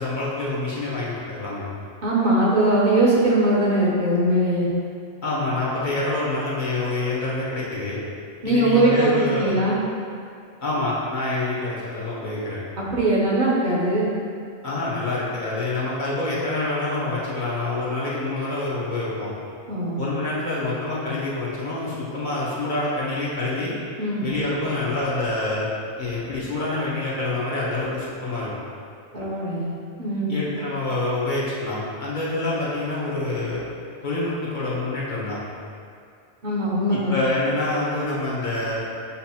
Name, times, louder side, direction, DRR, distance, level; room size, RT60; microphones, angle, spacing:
voice 1, 0.0-1.7 5.2-8.0 8.4-9.6 10.6-12.6 14.6-19.3 20.0-23.7 24.2-25.7 26.0-28.5 30.3-33.6 34.0-35.4 36.9-38.8, left 2 dB, 50° left, -7 dB, 0.9 m, -26 dB
voice 2, 2.0-4.7 8.4-9.8 12.8-14.1 19.7-20.0 24.0-24.3 29.1-29.7 30.0-30.4 36.4-37.2, right 1 dB, 50° right, -6 dB, 0.7 m, -21 dB
6.8 x 2.5 x 2.8 m, 2.3 s
omnidirectional pair, 1.1 m